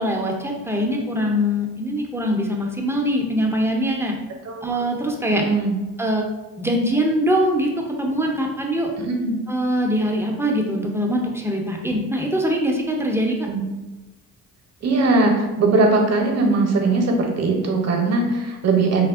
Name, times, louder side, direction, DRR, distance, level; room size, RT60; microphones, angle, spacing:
voice 1, 0.0-4.1 4.6-5.4 6.0-6.3 6.6-7.7 8.0-8.9 9.5-13.5, equal, 10° right, 0 dB, 0.3 m, -22 dB
voice 2, 5.3-5.8 9.0-9.3 13.5-13.6 14.8-19.1, right 3 dB, 45° right, 2 dB, 0.6 m, -20 dB
3.3 x 2.0 x 2.3 m, 1.1 s
cardioid pair, 95°, 36 cm